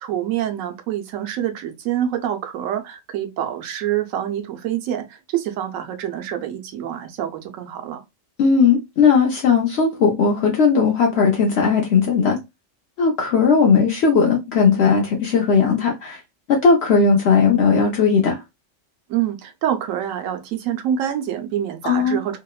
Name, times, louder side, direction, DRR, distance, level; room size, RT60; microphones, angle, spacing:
voice 1, 0.0-8.0 19.1-22.4, right 10 dB, 85° right, 1.0 m, -26 dB
voice 2, 8.4-12.4 13.0-16.2 16.5-18.4 21.8-22.2, left 5 dB, 65° left, 0.8 m, -17 dB
2.9 x 2.0 x 2.3 m
omnidirectional pair, 1.3 m